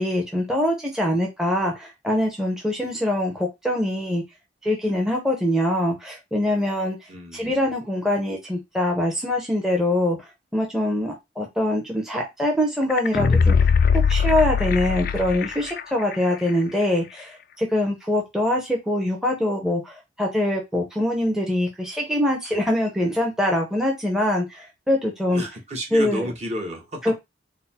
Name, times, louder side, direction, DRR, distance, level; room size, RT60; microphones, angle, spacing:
voice 1, 0.0-4.2 4.6-7.0 7.3-10.2 10.5-25.4 25.9-26.3 27.0-27.1, left 1 dB, 5° right, 0 dB, 0.7 m, -23 dB
voice 2, 7.1-7.7 25.3-27.1, equal, 35° right, 1 dB, 1.0 m, -32 dB
sound 1, 12.9-15.8 16.1-16.2, left 6 dB, 50° left, 0.4 m, -20 dB
4.0 x 2.1 x 4.2 m, 0.20 s
head